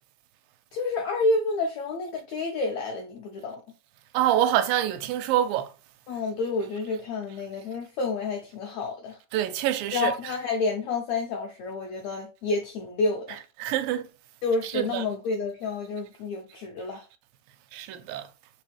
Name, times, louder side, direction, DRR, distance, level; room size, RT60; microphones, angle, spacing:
voice 1, 0.7-3.6 6.1-9.2 9.9-13.4 14.4-17.0, left 3 dB, 85° left, 1.5 m, -29 dB
voice 2, 4.1-5.7 9.3-10.4 13.3-14.0 14.7-15.1 17.7-18.2, right 12 dB, 85° right, 2.2 m, -26 dB
5.0 x 3.1 x 3.3 m
omnidirectional pair, 3.9 m